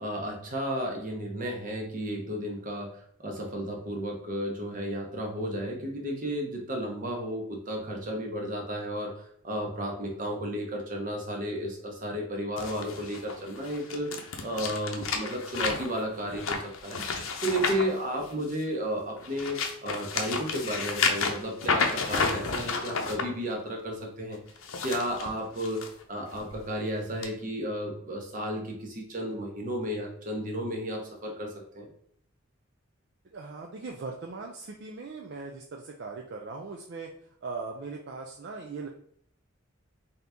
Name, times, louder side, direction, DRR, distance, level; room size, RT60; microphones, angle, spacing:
voice 1, 0.0-2.9 3.2-17.1 17.4-24.4 24.8-31.9, equal, 40° right, 1 dB, 0.9 m, -33 dB
sound 1, 12.6-18.7 19.2-23.2 24.5-25.9 26.3-26.6 27.2-27.3, left 4 dB, 80° left, 0.6 m, -31 dB
voice 2, 33.3-37.1 37.4-38.9, right 4 dB, 55° right, 2 dB, 0.4 m, -39 dB
3.9 x 2.9 x 3.4 m, 0.65 s
head